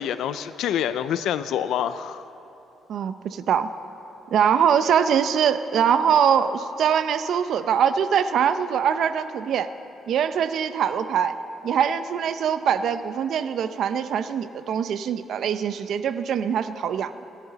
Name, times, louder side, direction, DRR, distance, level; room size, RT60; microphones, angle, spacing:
voice 1, 0.0-2.2, left 9 dB, 80° left, 12 dB, 0.4 m, -26 dB
voice 2, 2.9-3.7 4.3-9.7 10.1-11.3 11.6-17.2, right 8 dB, 60° right, 11 dB, 0.6 m, -23 dB
27.5 x 11.0 x 4.1 m, 2.9 s
cardioid pair, 170°, 0 cm